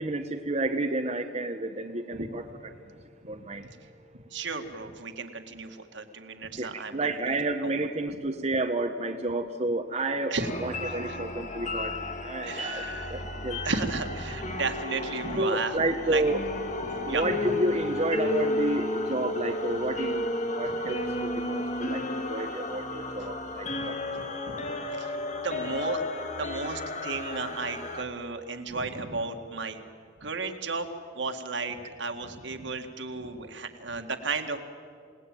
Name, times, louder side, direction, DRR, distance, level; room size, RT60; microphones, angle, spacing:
voice 1, 0.0-3.0 3.3-3.7 6.6-13.6 15.4-16.4 16.8-24.0, right 2 dB, 35° right, 3 dB, 1.0 m, -31 dB
voice 2, 4.3-7.4 10.3-10.5 10.8-11.2 12.4-13.2 13.6-16.2 16.9-17.5 23.6-23.8 24.4-24.6 24.9-25.1 25.4-26.1 26.4-29.8 30.2-30.9 31.1-34.6, right 4 dB, 65° right, 5 dB, 2.0 m, -34 dB
sound 1, 10.4-28.0, left 2 dB, 40° left, 1.9 m, -33 dB
28.0 x 18.5 x 9.2 m, 2.2 s
head